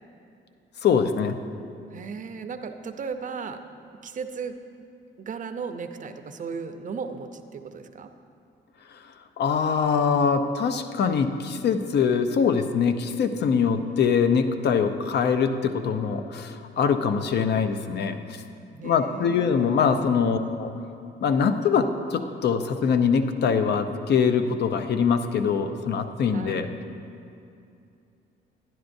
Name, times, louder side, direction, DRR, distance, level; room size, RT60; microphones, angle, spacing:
voice 1, 0.8-1.3 9.4-18.4 18.8-20.7 21.2-26.7, left 6 dB, 60° left, 9 dB, 0.6 m, -23 dB
voice 2, 1.9-3.6 4.0-4.6 5.2-8.1 18.7-19.9 26.3-26.7, right 5 dB, 40° right, 7 dB, 0.6 m, -36 dB
11.0 x 10.0 x 2.6 m, 2.6 s
cardioid pair, 90°, 20 cm